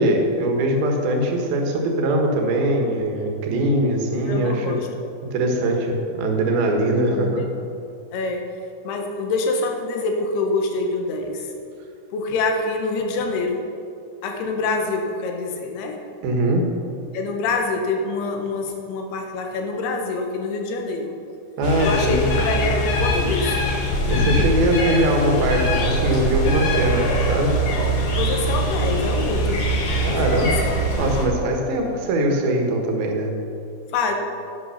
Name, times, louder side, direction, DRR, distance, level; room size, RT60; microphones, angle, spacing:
voice 1, 0.0-4.8 5.3-7.4 16.2-16.6 21.6-22.3 24.1-27.6 30.0-30.5 30.9-33.3, right 1 dB, 75° right, 2 dB, 3.2 m, -21 dB
voice 2, 4.3-4.8 7.1-7.5 8.1-8.5 8.8-11.5 12.1-13.7 14.2-16.0 17.1-21.2 21.8-23.7 28.1-29.7 30.1-31.0 33.9-34.1, left 3 dB, 85° left, 3 dB, 3.2 m, -26 dB
sound 1, 21.6-31.2, equal, 45° left, 2.1 m, -23 dB
Shaker Table Contact, 25.5-30.9, right 6 dB, 20° left, 2.6 m, -28 dB
11.0 x 9.4 x 5.7 m, 2.6 s
omnidirectional pair, 4.4 m